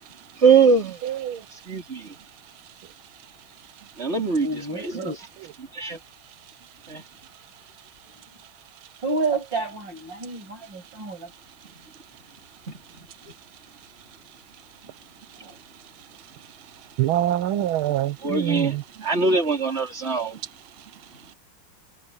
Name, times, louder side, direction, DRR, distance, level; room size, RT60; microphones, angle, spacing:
voice 1, 0.4-1.0 1.7-2.0 4.0-4.5 4.8-4.9 5.7-6.0 6.9-7.0 18.2-18.7 19.0-20.4, right 5 dB, 30° right, 3.9 m, -21 dB
voice 2, 4.1-5.2 8.0-8.2 9.0-11.3 15.3-15.6, right 3 dB, 65° right, 8.3 m, -30 dB
voice 3, 17.0-18.8, right 12 dB, 85° right, 1.7 m, -24 dB
omnidirectional pair, 2.2 m